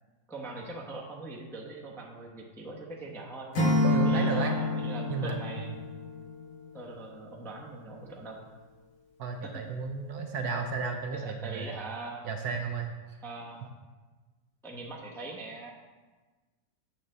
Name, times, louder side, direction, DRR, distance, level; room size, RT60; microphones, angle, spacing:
voice 1, 0.3-3.5 4.0-5.7 6.7-8.4 9.4-9.6 11.1-12.3 13.2-13.7 14.6-15.7, right 2 dB, ahead, -3 dB, 0.6 m, -41 dB
Acoustic guitar / Strum, 3.5-6.6, left 1 dB, 90° left, 2.4 m, -28 dB
voice 2, 3.8-4.5 5.1-5.4 9.2-11.7 12.2-12.9, right 4 dB, 65° right, 4 dB, 1.1 m, -33 dB
8.6 x 3.8 x 6.7 m, 1.3 s
omnidirectional pair, 1.9 m